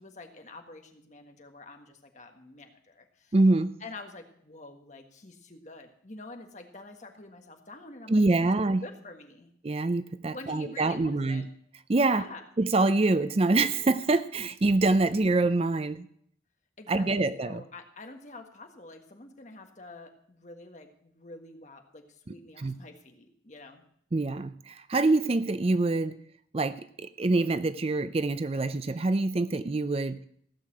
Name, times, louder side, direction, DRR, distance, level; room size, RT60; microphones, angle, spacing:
voice 1, 0.0-3.3 3.8-9.5 10.3-11.5 12.1-12.4 16.8-23.8, left 2 dB, 40° left, 5 dB, 1.6 m, -47 dB
voice 2, 3.3-3.7 8.1-8.8 9.6-11.5 11.9-12.2 12.6-16.1 16.9-17.6 22.6-22.8 24.1-26.2 26.5-30.2, right 2 dB, 30° right, 13 dB, 0.4 m, -25 dB
15.5 x 6.7 x 7.6 m, 0.65 s
head